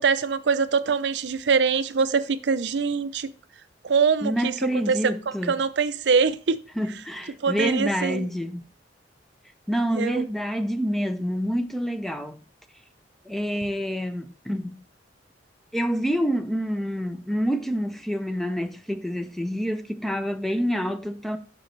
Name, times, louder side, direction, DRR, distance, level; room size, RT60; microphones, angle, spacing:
voice 1, 0.0-3.3 3.8-4.5 4.9-5.1 5.5-6.6 7.4-8.3 9.9-10.2, right 5 dB, 70° right, 0.5 m, -23 dB
voice 2, 4.2-5.6 6.8-8.6 9.7-12.4 13.3-14.8 15.7-21.4, equal, ahead, 0.5 m, -27 dB
6.4 x 6.2 x 3.2 m
head